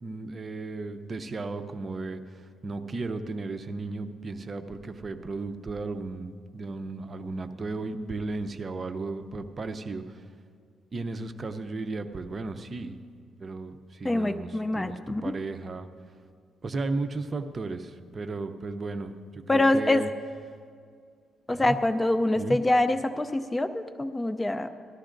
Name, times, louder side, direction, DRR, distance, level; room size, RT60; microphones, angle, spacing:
voice 1, 0.0-10.2 10.9-13.0 13.4-15.9 16.6-20.1 21.5-21.8 22.4-22.6, right 3 dB, 35° right, 8 dB, 0.6 m, -35 dB
voice 2, 14.0-15.3 19.5-20.0 21.5-24.7, left 2 dB, 15° left, 10 dB, 0.5 m, -25 dB
17.5 x 13.0 x 2.6 m, 2.2 s
cardioid pair, 90°, 0 cm